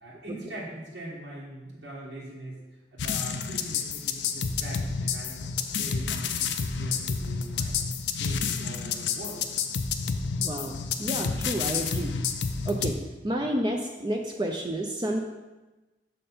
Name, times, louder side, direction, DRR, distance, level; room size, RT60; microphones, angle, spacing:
voice 1, 0.0-2.6 2.9-5.4 5.8-7.8 8.2-9.4 13.4-13.5, right 1 dB, 85° right, -6 dB, 1.7 m, -42 dB
sound 1, 3.0-12.9, left 6 dB, 85° left, 0.5 m, -30 dB
voice 2, 10.4-12.1 12.7-13.0 13.2-15.2, right 1 dB, 25° right, 1 dB, 0.5 m, -30 dB
6.6 x 5.1 x 4.2 m, 1.1 s
head